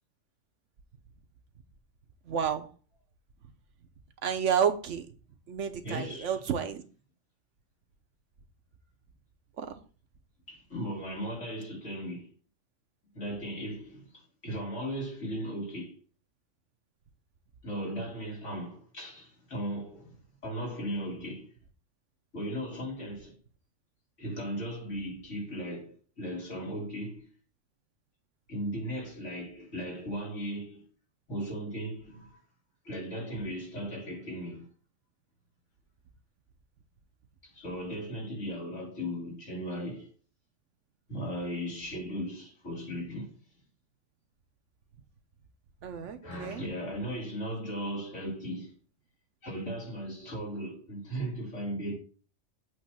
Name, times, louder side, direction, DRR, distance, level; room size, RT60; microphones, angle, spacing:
voice 1, 2.3-2.7 4.2-5.1 5.5-6.8 9.6-9.7 45.8-46.6, right 8 dB, 80° right, 1.3 m, -30 dB
voice 2, 5.8-6.4 10.5-12.3 13.1-16.0 17.6-21.5 22.3-23.4 24.2-27.3 28.5-30.8 31.3-32.4 32.8-34.7 37.4-40.1 41.1-43.4 46.2-48.7 49.4-52.0, equal, 90° left, 3.1 m, -37 dB
8.1 x 3.2 x 6.1 m
omnidirectional pair, 1.2 m